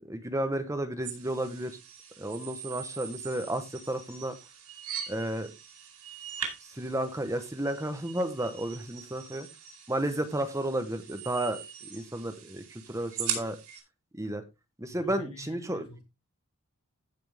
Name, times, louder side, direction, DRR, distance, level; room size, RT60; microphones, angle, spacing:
voice 1, 0.1-1.8 2.2-4.3 5.1-5.5 6.7-9.5 9.9-11.6 11.9-13.6 14.2-14.4 14.8-15.9, right 1 dB, 15° right, 1.0 m, -32 dB
sound 1, 1.0-13.8, right 8 dB, 90° right, 4.5 m, -41 dB
voice 2, 14.9-16.0, left 1 dB, 80° left, 7.7 m, -47 dB
14.5 x 6.0 x 3.4 m
head